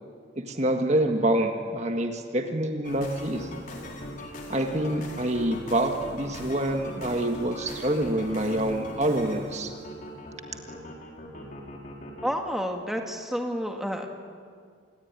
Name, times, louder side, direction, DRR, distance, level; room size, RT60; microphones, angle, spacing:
voice 1, 0.4-3.5 4.5-9.7, right 1 dB, 35° right, 4 dB, 1.7 m, -26 dB
sound 1, 2.8-12.3, left 1 dB, 40° left, 4.4 m, -39 dB
voice 2, 12.2-14.1, equal, ahead, 3 dB, 2.1 m, -30 dB
28.0 x 21.0 x 9.7 m, 2.1 s
head